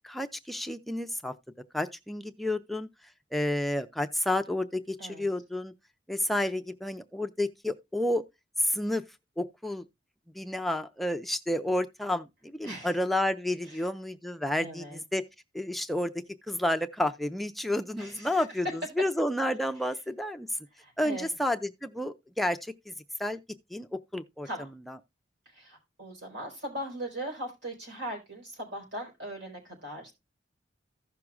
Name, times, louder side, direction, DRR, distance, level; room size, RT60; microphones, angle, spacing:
voice 1, 0.0-1.3 1.7-2.9 3.3-5.7 6.1-8.2 8.6-9.0 9.4-9.8 10.4-15.2 15.5-18.7 19.0-20.5 21.0-22.9 23.2-23.4 23.7-24.5 24.9-25.0, left 1 dB, ahead, 0.4 m, -30 dB
voice 2, 12.6-13.0 13.6-13.9 14.6-15.0 18.0-18.4 20.7-21.4 24.4-24.7 25.5-30.1, right 1 dB, 70° right, 4.5 m, -40 dB
15.5 x 5.9 x 2.4 m
head